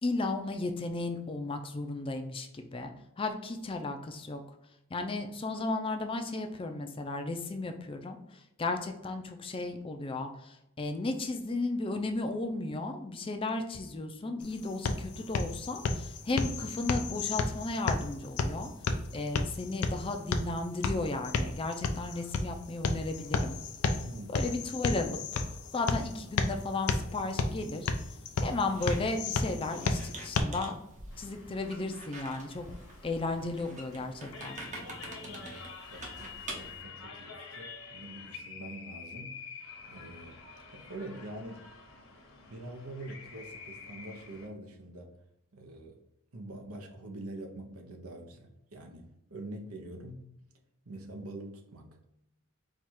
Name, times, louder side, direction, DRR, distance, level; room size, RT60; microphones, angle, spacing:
voice 1, 0.0-2.9 3.2-4.4 4.9-8.2 8.6-18.7 19.1-23.6 24.3-25.4 25.7-27.9 28.4-30.7 31.2-32.7 33.0-34.6, left 2 dB, 25° left, 5 dB, 0.4 m, -34 dB
sound 1, 14.4-30.4, left 3 dB, 90° left, 0.5 m, -33 dB
voice 2, 24.0-24.5 35.2-40.4 40.7-41.7 42.5-45.1 45.5-46.0 46.3-50.2 50.8-52.0, right 1 dB, 80° right, 3 dB, 0.8 m, -45 dB
Squeak, 28.7-36.8, right 2 dB, 35° right, 0.8 m, -46 dB
sound 2, 31.1-44.5, left 5 dB, 65° left, 0.9 m, -48 dB
4.6 x 2.4 x 4.3 m, 0.88 s
head